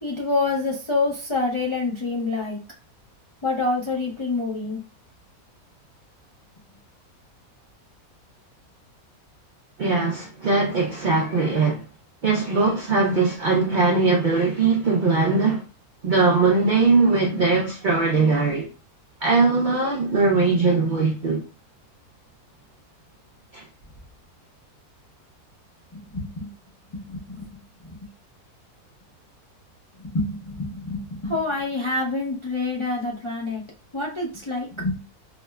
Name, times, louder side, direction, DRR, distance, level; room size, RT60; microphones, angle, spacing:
voice 1, 0.0-2.6 3.4-4.8 25.9-26.5 26.9-27.5 30.0-33.6 33.9-35.0, left 3 dB, 40° left, 0.4 m, -27 dB
voice 2, 9.8-11.9 12.2-15.6 16.0-18.7 19.2-21.4 23.5-23.6, right 4 dB, 85° right, 0.4 m, -20 dB
5.0 x 2.1 x 2.2 m
omnidirectional pair, 1.6 m